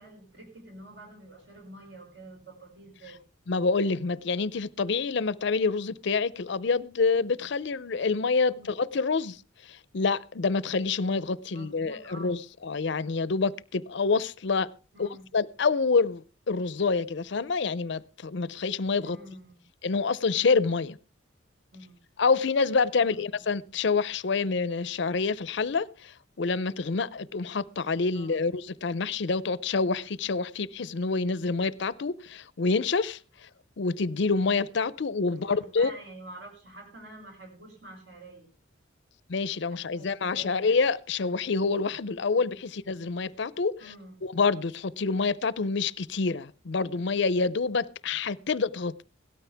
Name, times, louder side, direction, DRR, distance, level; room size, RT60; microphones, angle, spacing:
voice 1, 0.0-3.2 8.5-8.7 11.5-12.4 14.9-15.3 19.0-19.6 21.7-22.0 23.0-23.4 28.1-28.4 35.3-38.6 39.7-40.7 42.3-42.6 43.8-44.1, right 1 dB, 60° right, 5.6 m, -48 dB
voice 2, 3.5-9.4 9.9-14.7 15.0-19.2 19.8-21.0 22.2-25.9 26.4-33.2 33.8-35.9 39.3-43.8 44.2-49.0, left 4 dB, 60° left, 0.5 m, -27 dB
17.5 x 13.0 x 3.4 m
head